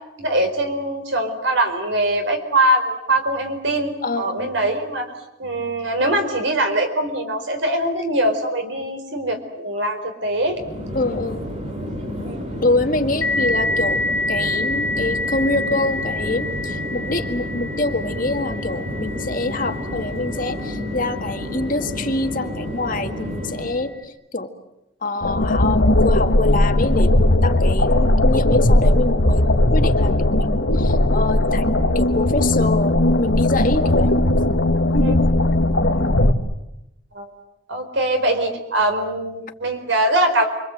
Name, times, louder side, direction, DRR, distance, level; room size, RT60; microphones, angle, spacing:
voice 1, 0.2-5.1 5.4-10.6 12.2-12.4 34.9-35.2 37.1-37.3 37.7-40.5, right 1 dB, 70° right, 5 dB, 4.7 m, -22 dB
voice 2, 4.0-4.5 10.9-11.4 12.6-14.0 14.3-24.5 25.0-29.5 29.7-34.1 36.0-36.1, left 2 dB, 45° left, 5 dB, 1.9 m, -25 dB
Chatter / Fixed-wing aircraft airplane, 10.4-23.9, equal, 35° right, 6.3 m, -30 dB
sound 1, 13.2-22.4, left 2 dB, 85° left, 2.4 m, -28 dB
sound 2, 25.2-36.3, left 1 dB, 65° left, 1.8 m, -17 dB
29.0 x 24.5 x 7.9 m, 0.88 s
head